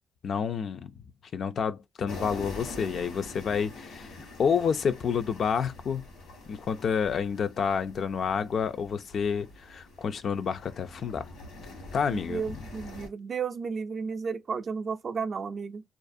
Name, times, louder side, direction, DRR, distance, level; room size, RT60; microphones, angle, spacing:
voice 1, 0.2-0.9 1.3-4.1 4.4-6.0 6.5-11.3 11.9-12.4, left 6 dB, 60° left, 0.3 m, -29 dB
sound 1, 2.1-13.1, left 2 dB, 85° left, 1.1 m, -45 dB
voice 2, 12.1-15.8, right 5 dB, 50° right, 0.4 m, -33 dB
2.4 x 2.0 x 2.5 m
cardioid pair, 75°, 0 cm